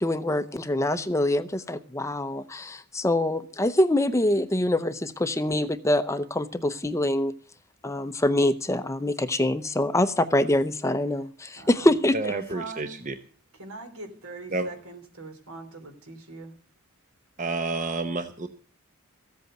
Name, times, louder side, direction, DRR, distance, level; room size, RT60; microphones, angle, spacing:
voice 1, 0.0-7.3 7.8-12.3, left 1 dB, 15° left, 11 dB, 0.6 m, -25 dB
voice 2, 11.5-11.9 12.3-12.9 13.5-16.5, right 3 dB, 80° right, 6 dB, 3.3 m, -42 dB
voice 3, 12.1-13.1 14.5-14.7 17.4-18.5, right 3 dB, 35° right, 8 dB, 0.9 m, -29 dB
15.0 x 8.2 x 7.8 m, 0.43 s
head